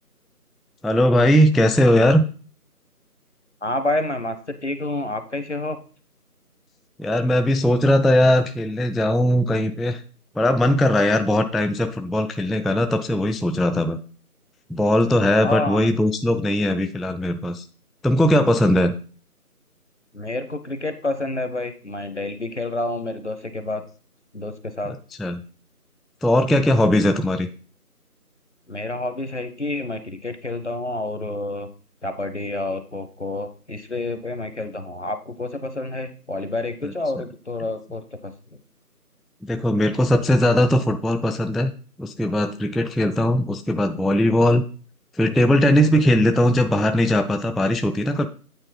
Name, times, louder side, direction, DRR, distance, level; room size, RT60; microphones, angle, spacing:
voice 1, 0.8-2.2 7.0-10.0 10.4-14.0 14.7-17.6 18.0-18.9 25.2-25.4 26.2-27.5 36.8-36.9 39.4-41.7 42.0-44.6 45.2-48.3, left 1 dB, ahead, 8 dB, 0.3 m, -19 dB
voice 2, 3.6-4.4 4.6-5.8 15.4-15.9 20.1-23.8 24.3-24.9 28.7-31.7 32.0-38.3, left 2 dB, 50° left, 9 dB, 0.7 m, -28 dB
8.7 x 4.1 x 4.1 m, 0.39 s
figure-of-eight pair, 180°, 46 cm